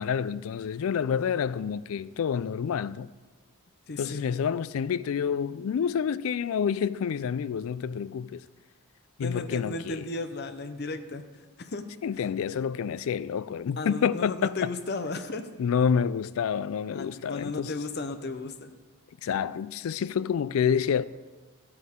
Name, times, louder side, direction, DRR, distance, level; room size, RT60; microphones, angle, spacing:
voice 1, 0.0-3.1 4.0-8.4 9.2-10.0 12.0-14.7 15.6-17.7 19.2-21.0, left 7 dB, 70° left, 0.3 m, -28 dB
voice 2, 3.9-4.2 9.2-11.2 11.6-11.8 13.8-15.5 16.9-18.7, left 3 dB, 45° left, 0.7 m, -34 dB
13.5 x 7.9 x 3.6 m
head